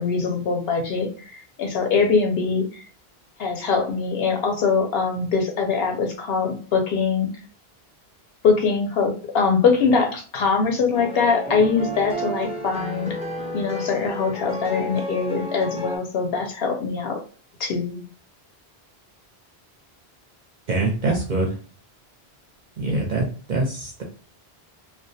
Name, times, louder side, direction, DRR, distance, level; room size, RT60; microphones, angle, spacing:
voice 1, 0.0-2.8 3.4-7.3 8.4-13.2 13.5-17.2 17.6-18.0, left 5 dB, 75° left, 4 dB, 0.8 m, -22 dB
sound 1, 10.9-16.0, right 1 dB, 10° right, 0.4 m, -31 dB
voice 2, 20.7-21.6 22.8-24.0, right 2 dB, 55° right, 1 dB, 0.6 m, -24 dB
2.2 x 2.1 x 2.6 m, 0.40 s
omnidirectional pair, 1.0 m